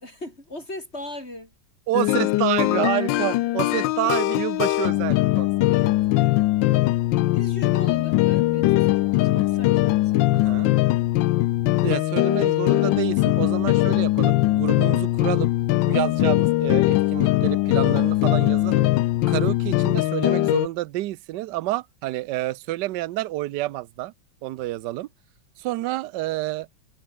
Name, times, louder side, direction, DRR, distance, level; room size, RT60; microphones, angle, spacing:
voice 1, 0.0-1.5 5.7-6.5 7.3-11.1, left 1 dB, 30° left, 7.7 m, -39 dB
sound 1, 1.9-20.7, left 17 dB, 75° left, 1.2 m, -21 dB
voice 2, 1.9-5.5 10.3-10.7 11.8-15.5 15.9-18.9 19.3-24.1 24.4-25.1 25.6-26.7, right 16 dB, 70° right, 1.2 m, -28 dB
omnidirectional pair, 2.1 m